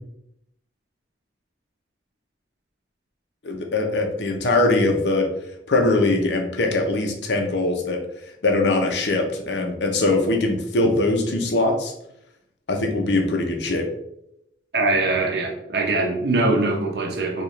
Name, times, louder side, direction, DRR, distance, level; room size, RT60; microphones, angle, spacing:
voice 1, 3.4-5.3 5.7-8.0 8.4-11.9 12.7-13.9, left 2 dB, 70° left, 3 dB, 0.7 m, -21 dB
voice 2, 14.7-17.4, right 2 dB, 60° right, 1 dB, 0.8 m, -22 dB
4.6 x 2.4 x 3.1 m, 0.79 s
head